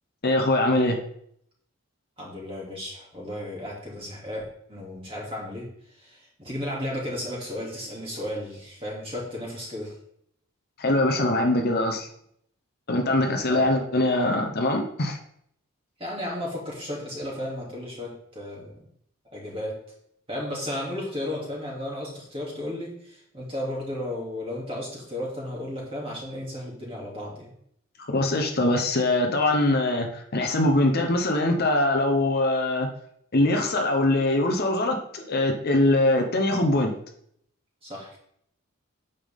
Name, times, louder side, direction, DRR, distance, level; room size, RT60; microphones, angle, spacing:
voice 1, 0.2-1.0 10.8-12.1 12.9-15.2 28.0-32.9 33.3-36.9, left 2 dB, 45° left, 3 dB, 0.9 m, -23 dB
voice 2, 2.2-5.7 5.9-9.9 13.5-13.7 16.0-18.8 19.3-19.7 20.3-27.5 37.8-38.2, left 1 dB, 25° right, -4 dB, 2.7 m, -34 dB
9.1 x 6.9 x 3.7 m, 0.70 s
head